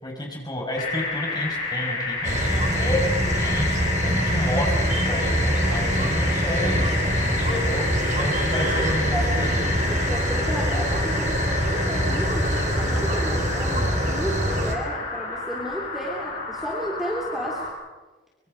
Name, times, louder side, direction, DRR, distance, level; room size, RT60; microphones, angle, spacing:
voice 1, 0.0-7.8 8.2-9.6, left 1 dB, 20° left, 0 dB, 5.3 m, -31 dB
sound 1, 0.8-17.7, left 3 dB, 45° left, 7.2 m, -30 dB
sound 2, 2.2-14.8, right 1 dB, 40° right, 3.6 m, -24 dB
voice 2, 9.1-17.6, right 1 dB, ahead, -3 dB, 3.1 m, -33 dB
24.5 x 22.5 x 6.5 m, 1.3 s
head